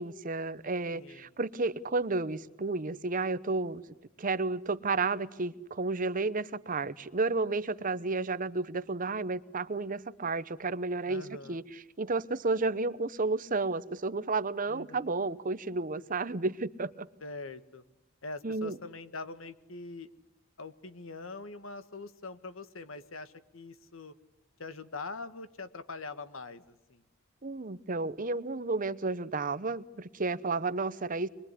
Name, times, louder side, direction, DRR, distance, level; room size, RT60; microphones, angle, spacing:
voice 1, 0.0-3.8 4.2-11.2 11.5-17.1 18.4-18.8 27.4-31.3, right 3 dB, 40° right, 15 dB, 0.9 m, -32 dB
voice 2, 0.9-1.3 11.1-11.6 14.7-15.2 17.2-17.8 18.2-20.1 20.6-24.1 24.6-27.0, left 3 dB, 80° left, 12 dB, 1.6 m, -43 dB
25.0 x 22.0 x 9.9 m, 0.88 s
head